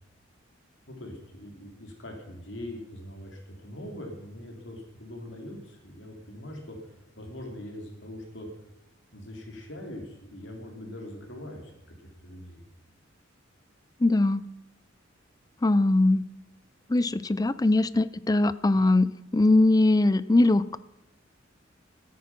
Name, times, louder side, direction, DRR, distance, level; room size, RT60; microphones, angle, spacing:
voice 1, 0.9-8.5 9.1-12.6, left 1 dB, 65° left, 2 dB, 3.0 m, -42 dB
voice 2, 14.0-14.4 15.6-16.2 16.9-20.8, left 2 dB, 20° left, 16 dB, 0.4 m, -21 dB
13.0 x 9.5 x 6.0 m, 0.88 s
head